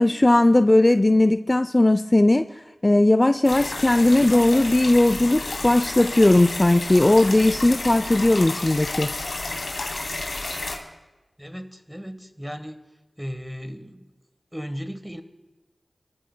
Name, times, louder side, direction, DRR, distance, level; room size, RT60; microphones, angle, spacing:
voice 1, 0.0-2.4 2.8-9.1, left 1 dB, 30° left, 10 dB, 0.4 m, -18 dB
sound 1, 3.4-10.8, left 2 dB, 80° left, 2.6 m, -31 dB
voice 2, 11.4-12.8 13.2-14.1 14.5-15.2, equal, 5° right, 9 dB, 1.2 m, -35 dB
29.5 x 14.0 x 2.2 m, 1.1 s
wide cardioid pair, 55°, 0 cm